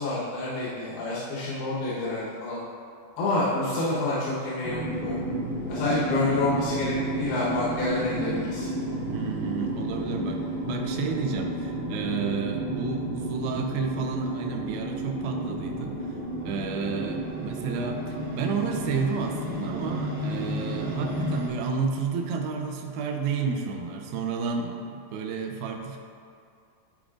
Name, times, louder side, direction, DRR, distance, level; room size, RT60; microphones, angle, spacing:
voice 1, 0.0-2.6 3.2-5.2 5.7-8.7 21.1-21.3, left 2 dB, 90° left, -8 dB, 3.2 m, -28 dB
sound 1, 4.6-21.5, right 1 dB, 55° right, 0.6 m, -32 dB
voice 2, 9.0-16.2 16.4-26.0, right 5 dB, 80° right, 2 dB, 2.5 m, -31 dB
13.5 x 4.8 x 2.5 m, 2.3 s
omnidirectional pair, 4.4 m